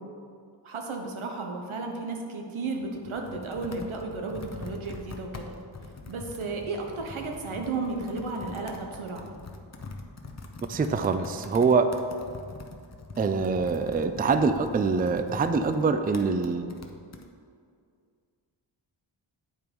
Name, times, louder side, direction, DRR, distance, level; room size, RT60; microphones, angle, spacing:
voice 1, 0.6-5.6 6.1-9.3, right 3 dB, 85° right, 2 dB, 1.1 m, -34 dB
Computer keyboard, 2.7-17.3, left 3 dB, 35° left, 0.8 m, -44 dB
voice 2, 10.7-11.9 13.2-16.7, right 4 dB, 20° right, 9 dB, 0.4 m, -24 dB
8.6 x 4.6 x 5.1 m, 2.3 s
cardioid pair, 65°, 47 cm